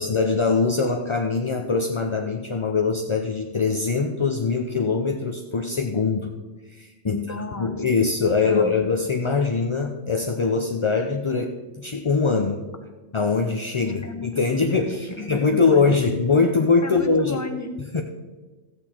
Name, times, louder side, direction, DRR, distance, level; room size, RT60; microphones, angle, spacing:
voice 1, 0.0-6.3 6.7-7.2 7.6-12.7 13.1-17.4 17.8-18.0, left 4 dB, 30° left, 3 dB, 0.6 m, -22 dB
voice 2, 7.0-7.7 8.5-8.8 13.8-15.9 16.8-17.7, left 3 dB, 15° left, 6 dB, 0.9 m, -34 dB
14.0 x 8.6 x 4.4 m, 1.3 s
omnidirectional pair, 1.3 m